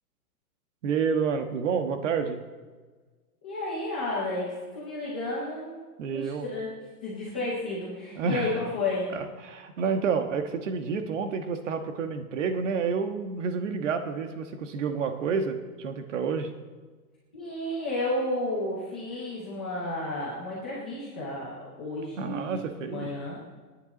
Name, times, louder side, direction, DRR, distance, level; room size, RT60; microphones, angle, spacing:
voice 1, 0.8-2.4 6.0-6.5 8.1-8.5 9.1-16.5 22.2-23.1, right 5 dB, 50° right, 7 dB, 1.5 m, -29 dB
voice 2, 3.4-5.8 6.1-6.7 7.0-9.1 17.3-22.6 22.9-23.5, left 2 dB, 5° left, -9 dB, 0.4 m, -32 dB
28.0 x 9.7 x 4.0 m, 1.4 s
hypercardioid pair, 170°, 46 cm